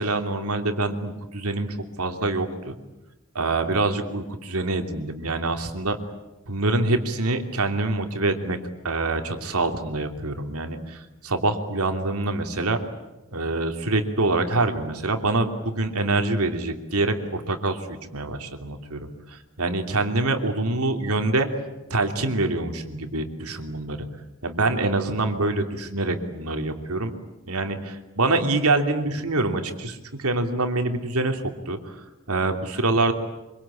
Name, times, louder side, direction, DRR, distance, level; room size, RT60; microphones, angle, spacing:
voice 1, 0.0-2.7 3.3-6.0 6.5-8.6 8.8-12.8 13.3-21.5 21.9-24.0 24.4-27.1 27.5-33.1, right 2 dB, 85° right, 6 dB, 3.2 m, -25 dB
26.0 x 24.5 x 8.7 m, 1.0 s
head